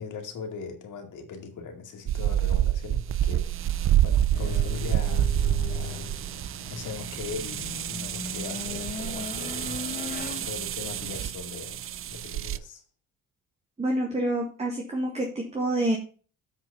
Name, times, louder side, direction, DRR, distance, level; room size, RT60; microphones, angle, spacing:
voice 1, 0.0-5.3 5.7-6.1 6.7-11.8 12.1-12.8, left 5 dB, 65° left, 2.4 m, -40 dB
sound 1, 2.1-12.6, right 12 dB, 40° right, 0.4 m, -28 dB
sound 2, 4.3-10.5, left 6 dB, 30° left, 0.9 m, -38 dB
voice 2, 13.8-16.0, right 1 dB, 20° right, 1.8 m, -27 dB
7.7 x 6.3 x 5.4 m
cardioid pair, 130°, 33 cm